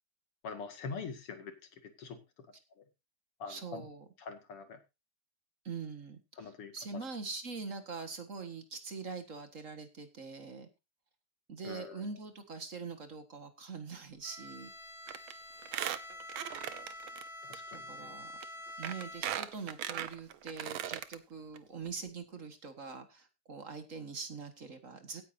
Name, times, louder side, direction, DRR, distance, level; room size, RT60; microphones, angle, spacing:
voice 1, 0.4-2.5 2.8-2.9 3.4-3.9 4.2-4.8 6.4-6.7 11.6-12.0 17.4-18.2, left 5 dB, 90° left, 7 dB, 3.0 m, -44 dB
voice 2, 3.5-4.1 5.6-10.7 11.5-14.7 17.7-18.3 18.8-25.2, right 4 dB, 40° right, 7 dB, 1.8 m, -43 dB
Bowed string instrument, 14.2-19.7, left 1 dB, ahead, 2.5 m, -47 dB
Squeak, 15.1-15.3 15.6-17.2 17.5-17.6 18.4-18.5 18.8-21.2 21.6-21.7 21.9-22.0, right 11 dB, 70° right, 1.6 m, -38 dB
17.0 x 9.6 x 2.7 m, 0.26 s
omnidirectional pair, 2.4 m